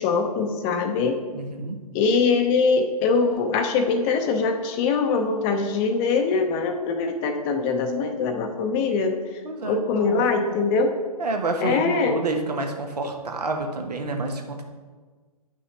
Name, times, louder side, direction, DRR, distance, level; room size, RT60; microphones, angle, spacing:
voice 1, 0.0-1.2 1.9-9.1 9.7-10.9 11.6-12.2, left 4 dB, 25° left, 5 dB, 0.6 m, -22 dB
voice 2, 1.3-1.8 9.4-10.6 11.2-14.6, right 3 dB, 75° right, 3 dB, 1.2 m, -29 dB
9.7 x 6.0 x 3.1 m, 1.4 s
figure-of-eight pair, 130°, 20 cm